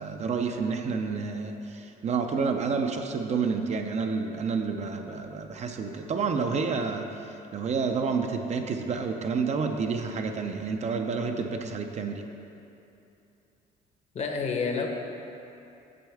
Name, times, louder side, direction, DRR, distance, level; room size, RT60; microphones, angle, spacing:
voice 1, 0.0-12.3, right 5 dB, 40° right, 5 dB, 0.5 m, -29 dB
voice 2, 14.1-14.9, left 5 dB, 40° left, 3 dB, 0.9 m, -28 dB
7.6 x 7.0 x 3.5 m, 2.8 s
cardioid pair, 110°, 17 cm